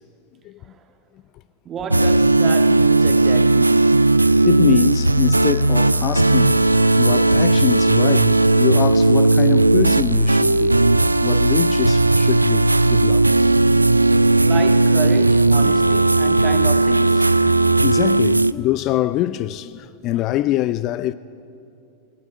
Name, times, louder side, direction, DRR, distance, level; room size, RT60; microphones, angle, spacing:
voice 1, 1.7-4.0 14.4-17.3, right 6 dB, 25° right, 1.9 m, -30 dB
sound 1, 1.9-18.5, right 2 dB, 85° right, 0.4 m, -16 dB
sound 2, 2.6-12.2 12.7-13.2 14.2-14.6, right 6 dB, 65° right, 1.7 m, -44 dB
voice 2, 4.4-6.6 7.0-10.8 11.2-13.4 15.6-15.8 17.3-21.1, left 14 dB, 40° left, 0.5 m, -24 dB
20.0 x 18.0 x 9.7 m
figure-of-eight pair, 90°, 0 cm